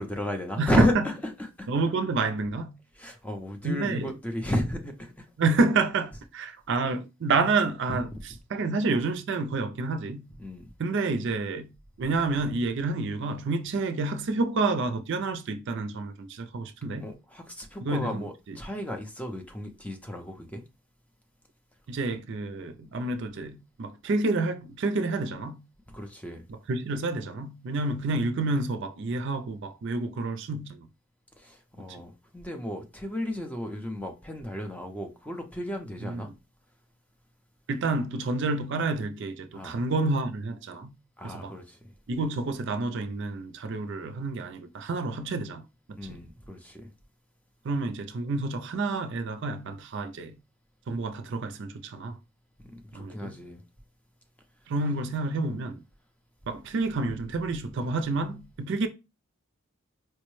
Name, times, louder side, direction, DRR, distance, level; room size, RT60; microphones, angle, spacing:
voice 1, 0.0-1.7 3.0-5.3 7.9-8.2 10.4-10.7 17.0-20.6 25.9-26.4 31.4-36.3 39.5-39.8 41.2-41.8 46.0-46.9 52.6-53.6, left 1 dB, 5° left, 0.4 m, -33 dB
voice 2, 0.6-1.0 1.7-2.8 3.6-4.2 5.4-10.3 10.8-17.2 17.8-18.6 21.9-25.7 26.5-30.9 31.9-32.0 36.0-36.2 37.7-40.9 41.2-41.5 42.1-45.6 45.9-46.3 47.6-50.4 50.9-52.2 52.9-53.4 54.7-55.8 56.5-58.9, right 3 dB, 55° right, 0.4 m, -29 dB
4.4 x 2.1 x 3.0 m
head